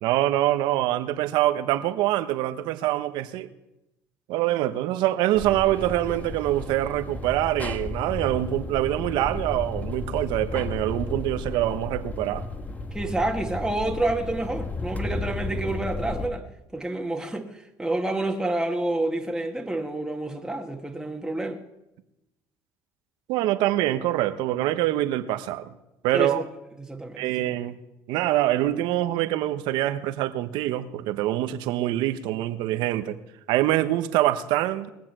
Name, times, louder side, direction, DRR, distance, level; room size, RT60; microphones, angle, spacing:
voice 1, 0.0-3.5 4.3-12.4 23.3-25.7 26.0-26.5 27.2-27.8 28.1-33.2 33.5-34.9, right 14 dB, 75° right, 1.1 m, -25 dB
sound 1, 5.3-16.3, left 2 dB, 20° left, 1.7 m, -33 dB
voice 2, 12.9-16.4 16.7-21.6 26.1-26.4 26.8-27.5, right 2 dB, 10° right, 1.8 m, -28 dB
20.5 x 7.6 x 7.5 m
supercardioid pair, 75°, 8 cm